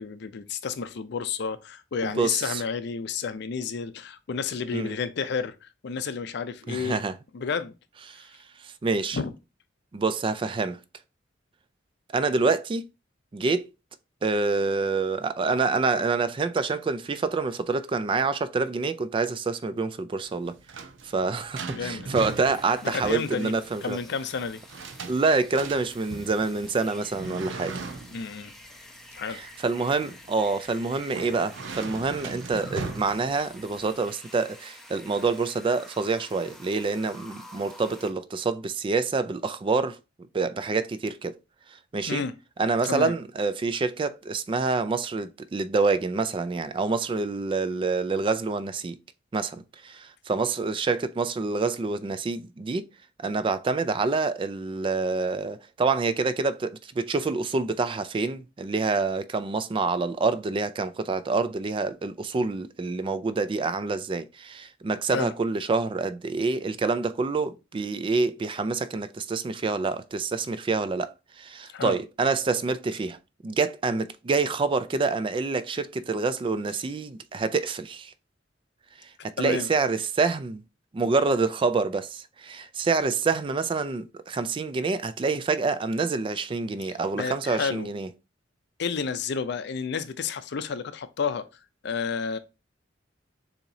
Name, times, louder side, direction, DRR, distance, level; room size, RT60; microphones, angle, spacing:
voice 1, 0.0-7.0 7.3-7.7 9.1-9.3 21.7-22.1 22.8-23.5 23.8-24.6 28.1-28.5 29.1-29.4 42.1-42.4 42.8-43.1 65.1-65.3 71.7-72.0 79.4-79.7 87.1-87.9 88.8-91.5 91.8-92.4, left 5 dB, 65° left, 0.5 m, -31 dB
voice 2, 2.0-2.6 4.7-5.0 6.7-7.1 8.1-8.3 8.6-9.2 9.9-10.8 12.1-12.9 13.3-13.7 14.2-20.6 21.0-24.0 25.1-27.8 29.3-40.0 40.3-41.4 41.9-42.2 42.6-49.0 49.3-52.9 53.2-73.2 73.4-78.1 79.2-80.6 80.9-88.1, right 4 dB, 30° right, 0.3 m, -27 dB
sound 1, 20.3-33.9, right 4 dB, 80° right, 0.6 m, -39 dB
sound 2, 22.2-38.1, left 1 dB, ahead, 0.7 m, -49 dB
6.8 x 2.8 x 2.7 m
head